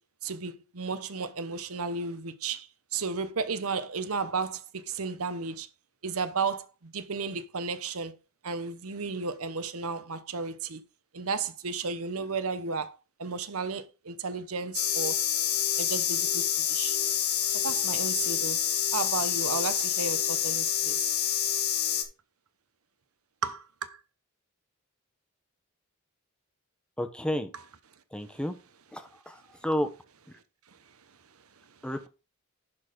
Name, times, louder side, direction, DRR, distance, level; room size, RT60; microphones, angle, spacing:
voice 1, 0.2-5.7 6.0-8.2 8.4-10.8 11.1-15.2 15.8-17.0 17.5-18.6 18.9-21.1 23.4-24.0, right 4 dB, 80° right, 1.0 m, -33 dB
sound 1, 14.7-22.0, left 10 dB, 85° left, 1.4 m, -27 dB
voice 2, 27.0-27.5 28.1-28.5 28.9-29.9 31.8-32.1, equal, 5° left, 0.9 m, -31 dB
11.0 x 4.0 x 5.1 m
head